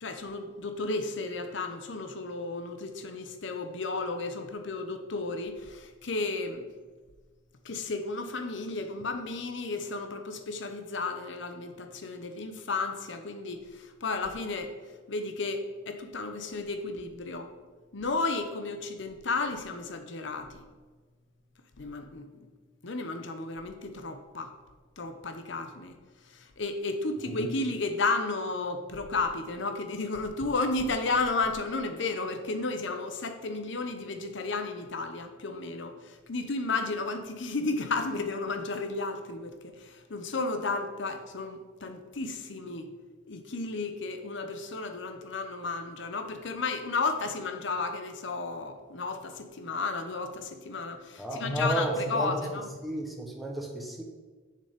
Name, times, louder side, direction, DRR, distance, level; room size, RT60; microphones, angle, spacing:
voice 1, 0.0-6.7 7.6-14.8 15.1-17.5 17.9-20.6 21.8-22.5 22.8-24.5 25.0-26.0 26.3-42.9 43.3-52.7, left 3 dB, 65° left, 8 dB, 0.9 m, -33 dB
voice 2, 51.2-52.4 52.8-54.0, right 1 dB, ahead, 0 dB, 1.0 m, -33 dB
7.0 x 6.7 x 5.2 m, 1.3 s
head